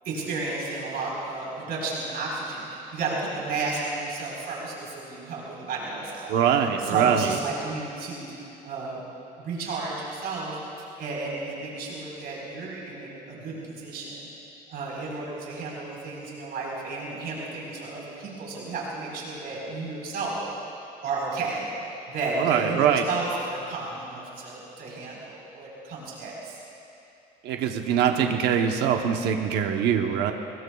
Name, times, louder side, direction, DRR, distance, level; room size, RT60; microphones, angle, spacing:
voice 1, 0.0-6.4 6.8-9.0 9.4-10.6 11.0-14.3 14.7-20.4 21.0-21.7 22.1-26.6, right 3 dB, 65° right, -4 dB, 4.4 m, -32 dB
voice 2, 6.3-7.4 22.4-23.0 27.4-30.3, right 8 dB, 85° right, 4 dB, 1.0 m, -23 dB
25.0 x 20.5 x 2.4 m, 2.8 s
cardioid pair, 110°, 17 cm